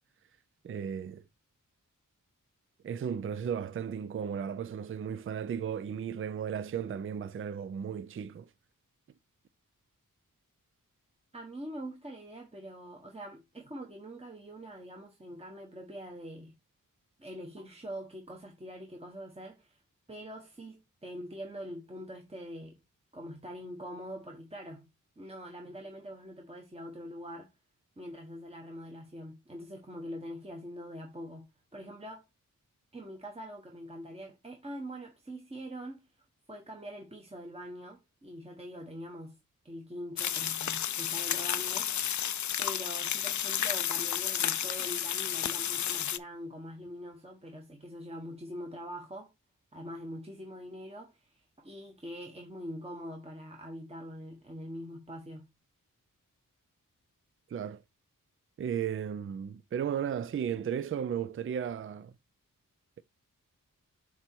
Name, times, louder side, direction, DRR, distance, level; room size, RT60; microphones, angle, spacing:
voice 1, 0.6-1.2 2.8-8.5 57.5-57.8 58.6-62.1, right 8 dB, 40° right, 0.4 m, -35 dB
voice 2, 11.3-16.5 17.2-19.8 20.1-22.8 23.1-24.9 25.2-27.5 28.0-31.5 31.7-32.3 32.9-36.1 36.5-39.4 39.6-41.9 42.6-49.3 49.7-55.5, equal, 20° right, 1.2 m, -44 dB
sound 1, 40.2-46.2, left 10 dB, 60° left, 0.4 m, -32 dB
7.7 x 3.0 x 4.5 m
wide cardioid pair, 85°, 33 cm